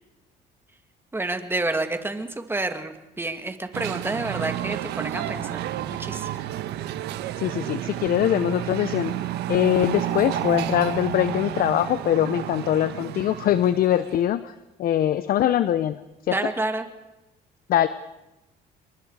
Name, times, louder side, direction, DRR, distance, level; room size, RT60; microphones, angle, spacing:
voice 1, 1.1-5.6 6.0-6.3 16.3-16.8, right 2 dB, 15° right, 7 dB, 2.3 m, -29 dB
sound 1, 3.7-14.3, right 12 dB, 80° right, 1.2 m, -31 dB
voice 2, 7.4-14.5 14.8-16.0 16.3-16.4 17.7-17.9, left 11 dB, 60° left, 13 dB, 0.8 m, -22 dB
28.5 x 23.0 x 4.9 m, 0.96 s
cardioid pair, 110°, 17 cm